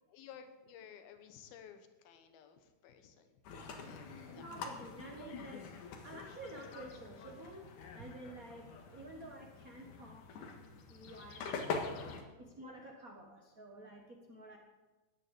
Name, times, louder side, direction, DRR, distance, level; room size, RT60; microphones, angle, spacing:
voice 1, 0.1-3.3 3.7-4.5 10.7-10.8 12.0-12.2, left 8 dB, 80° left, 8 dB, 3.1 m, -55 dB
sound 1, 3.5-12.2, left 4 dB, 65° left, 2.8 m, -45 dB
voice 2, 4.2-5.7 6.0-10.3 10.9-11.8 12.6-14.6, right 1 dB, 60° right, 1 dB, 0.8 m, -50 dB
14.5 x 9.7 x 8.2 m, 1.2 s
omnidirectional pair, 4.3 m